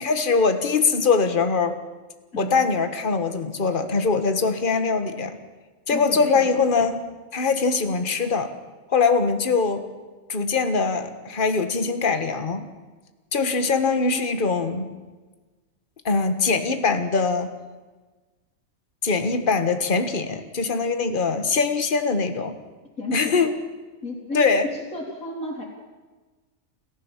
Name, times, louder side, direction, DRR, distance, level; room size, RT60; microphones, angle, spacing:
voice 1, 0.0-1.8 2.4-5.4 5.9-7.0 7.3-8.5 8.9-9.8 10.3-12.7 13.3-14.9 16.0-17.5 19.0-22.5 23.1-23.5 24.3-24.6, left 4 dB, 40° left, 8 dB, 1.7 m, -22 dB
voice 2, 2.3-2.7 5.9-6.7 23.0-23.4 24.0-25.6, left 2 dB, 85° left, -4 dB, 4.2 m, -33 dB
28.0 x 15.0 x 7.4 m, 1.3 s
omnidirectional pair, 1.4 m